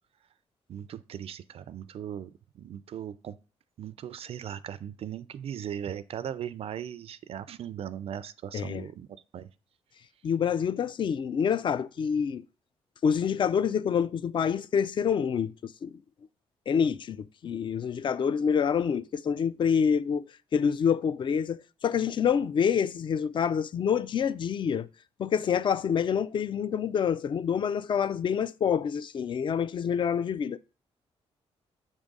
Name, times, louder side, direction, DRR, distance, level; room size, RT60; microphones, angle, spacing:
voice 1, 0.7-3.4 3.8-9.5, right 9 dB, 55° right, 0.4 m, -38 dB
voice 2, 8.5-8.9 10.2-12.5 13.0-16.0 16.7-24.9 25.2-30.6, left 7 dB, 45° left, 0.4 m, -27 dB
7.1 x 3.6 x 5.2 m
cardioid pair, 105°, 12 cm